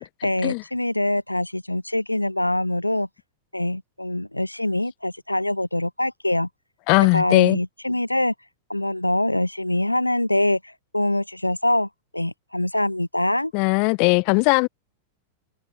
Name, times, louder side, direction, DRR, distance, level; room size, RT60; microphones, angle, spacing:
voice 1, 0.2-3.1 3.5-6.5 7.1-8.3 8.7-13.5, left 1 dB, 90° left, 0.5 m, -24 dB
voice 2, 6.9-7.6 13.5-14.7, left 37 dB, 45° left, 1.0 m, -19 dB
figure-of-eight pair, 95°, 0 cm